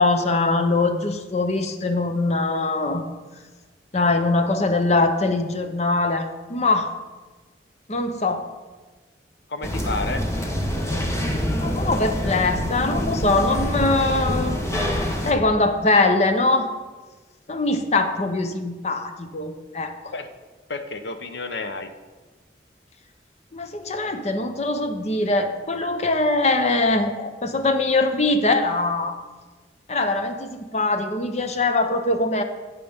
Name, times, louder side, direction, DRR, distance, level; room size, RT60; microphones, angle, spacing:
voice 1, 0.0-3.0 3.9-6.9 7.9-8.5 11.6-14.6 15.2-16.7 17.5-19.9 23.5-29.2 29.9-32.4, left 2 dB, 40° left, 7 dB, 0.7 m, -22 dB
voice 2, 9.5-10.2 20.1-20.3 20.7-21.9, left 3 dB, 75° left, 8 dB, 0.8 m, -30 dB
sound 1, 9.6-15.3, equal, 15° left, 1.0 m, -25 dB
12.0 x 8.4 x 3.6 m, 1.3 s
head